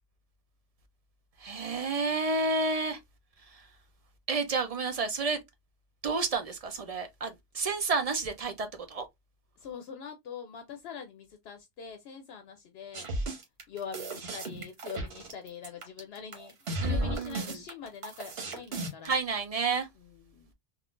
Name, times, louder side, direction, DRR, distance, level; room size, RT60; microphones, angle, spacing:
voice 1, 1.4-3.0 3.4-3.7 4.3-5.4 6.0-9.1 16.8-17.6 19.0-19.9, right 3 dB, 50° right, 0.4 m, -30 dB
voice 2, 9.6-13.1 13.7-16.5 16.8-19.2 20.0-20.5, left 7 dB, 75° left, 0.8 m, -44 dB
sound 1, 12.9-19.1, right 1 dB, 70° right, 1.1 m, -34 dB
3.6 x 2.4 x 2.4 m
omnidirectional pair, 1.1 m